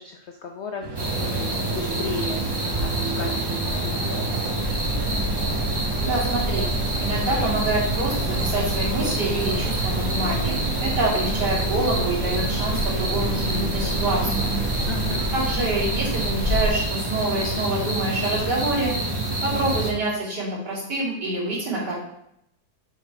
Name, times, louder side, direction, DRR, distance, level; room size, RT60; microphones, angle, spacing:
voice 1, 0.0-4.5 14.9-15.3, left 6 dB, 70° left, 3 dB, 0.6 m, -37 dB
sound 1, 0.8-15.6, right 4 dB, 55° right, 1.1 m, -36 dB
sound 2, 1.0-19.9, right 2 dB, 20° right, 0.7 m, -27 dB
sound 3, 4.6-16.7, left 1 dB, 15° left, 2.4 m, -30 dB
voice 2, 6.0-6.7 7.0-14.5 15.3-18.9 19.4-21.9, right 2 dB, 80° right, -7 dB, 3.2 m, -26 dB
5.9 x 4.4 x 4.5 m, 0.77 s
omnidirectional pair, 1.8 m